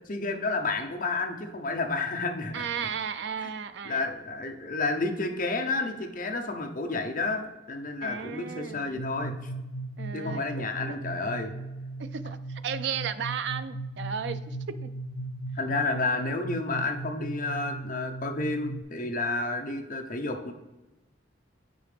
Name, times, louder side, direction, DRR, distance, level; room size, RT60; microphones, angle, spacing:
voice 1, 0.1-2.6 3.4-3.5 3.8-9.3 10.1-11.5 15.5-20.5, left 3 dB, 45° left, 4 dB, 0.8 m, -30 dB
voice 2, 2.5-4.0 8.0-9.0 10.0-10.7 11.2-11.3 12.0-14.9, right 7 dB, 65° right, 12 dB, 0.4 m, -35 dB
sound 1, 9.0-18.8, right 2 dB, 85° left, 0.5 m, -37 dB
8.6 x 4.8 x 3.4 m, 1.0 s
head